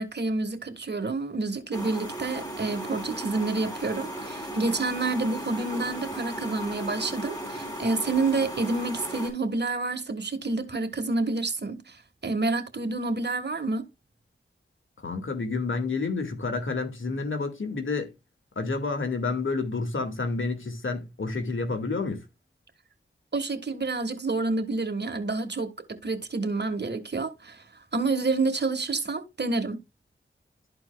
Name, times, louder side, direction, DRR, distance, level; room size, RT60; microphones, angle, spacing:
voice 1, 0.0-13.9 23.3-27.6 27.9-29.8, right 3 dB, 55° right, 1.5 m, -28 dB
sound 1, 1.7-9.3, equal, 20° left, 4.5 m, -36 dB
voice 2, 15.0-18.1 18.6-22.2, left 3 dB, 70° left, 1.9 m, -29 dB
12.5 x 4.5 x 2.2 m
cardioid pair, 45°, 21 cm